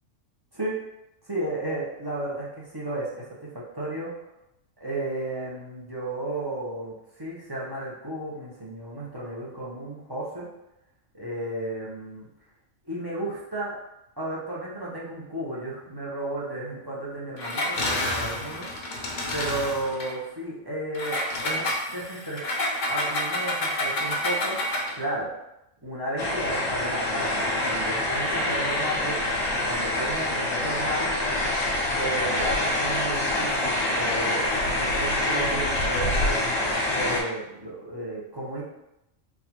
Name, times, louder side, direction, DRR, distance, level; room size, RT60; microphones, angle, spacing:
voice 1, 1.2-3.0 3.4-3.5 3.7-4.1 4.8-6.9 7.2-10.5 11.1-12.3 12.9-13.7 14.2-18.7 19.3-22.5 22.9-24.6 24.9-25.3 25.8-31.1 31.9-34.4 34.7-36.6 36.9-38.6, right 1 dB, 25° right, -7 dB, 0.6 m, -33 dB
Engine, 17.4-20.1 20.9-25.0, left 1 dB, 55° left, 0.5 m, -29 dB
sound 1, 26.2-37.2, left 1 dB, 80° left, 1.2 m, -26 dB
4.0 x 2.4 x 2.9 m, 0.85 s
omnidirectional pair, 1.3 m